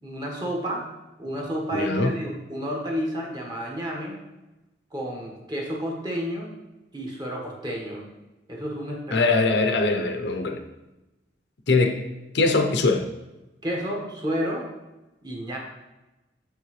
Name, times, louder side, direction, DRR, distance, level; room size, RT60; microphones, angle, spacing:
voice 1, 0.0-0.9 1.2-4.2 4.9-6.5 6.9-8.0 8.5-9.2 13.6-14.7 15.2-15.6, equal, 25° right, -1 dB, 1.3 m, -30 dB
voice 2, 1.7-2.1 9.1-10.6 11.7-12.1 12.3-13.1, left 3 dB, 70° left, 5 dB, 0.7 m, -22 dB
7.0 x 6.6 x 3.2 m, 1.0 s
head